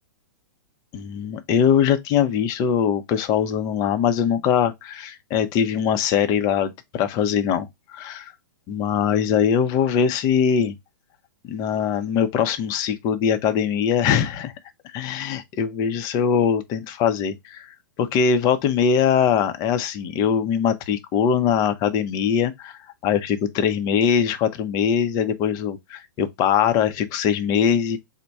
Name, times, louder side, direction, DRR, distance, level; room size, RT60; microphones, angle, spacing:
voice 1, 0.9-8.3 8.7-10.8 11.4-14.5 14.9-22.5 23.0-28.0, left 7 dB, 35° left, 0.6 m, -22 dB
4.1 x 2.2 x 4.5 m
hypercardioid pair, 125°, 11 cm